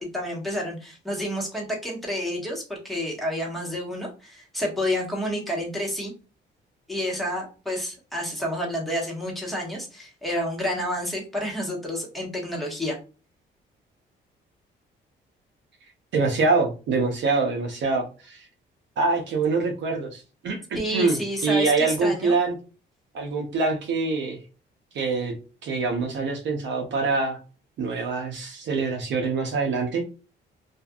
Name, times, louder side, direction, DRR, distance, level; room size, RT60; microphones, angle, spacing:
voice 1, 0.0-6.1 6.9-13.0 20.7-22.3, equal, ahead, -2 dB, 1.3 m, -29 dB
voice 2, 16.1-18.5 19.0-22.5 23.1-24.4 24.9-25.3 25.6-27.4 27.8-30.0, right 4 dB, 70° right, 2 dB, 0.7 m, -25 dB
2.5 x 2.4 x 2.3 m, 0.34 s
cardioid pair, 90°, 20 cm